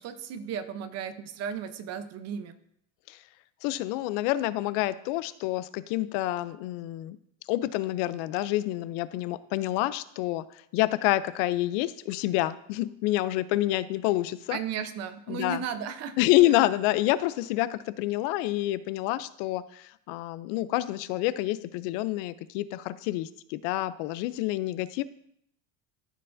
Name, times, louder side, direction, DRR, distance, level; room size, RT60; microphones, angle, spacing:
voice 1, 0.0-2.6 14.5-16.2, right 7 dB, 45° right, 11 dB, 0.7 m, -35 dB
voice 2, 3.6-7.2 7.5-10.4 10.7-14.6 15.3-15.6 16.2-25.0, left 16 dB, 85° left, 15 dB, 0.5 m, -28 dB
13.0 x 4.6 x 2.5 m, 0.72 s
cardioid pair, 140°, 35 cm